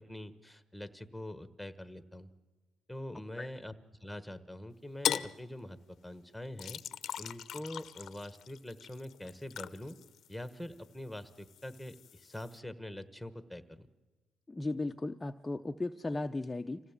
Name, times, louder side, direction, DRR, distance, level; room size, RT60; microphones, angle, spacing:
voice 1, 0.0-2.3 2.9-3.7 4.0-6.8 7.2-10.0 10.3-13.9, left 1 dB, ahead, 11 dB, 1.3 m, -44 dB
sound 1, 5.0-5.4 6.6-10.9 11.2-12.6, left 9 dB, 70° left, 0.7 m, -39 dB
voice 2, 14.5-16.8, left 2 dB, 15° left, 6 dB, 0.6 m, -36 dB
26.0 x 16.5 x 7.4 m, 1.3 s
cardioid pair, 90°, 0 cm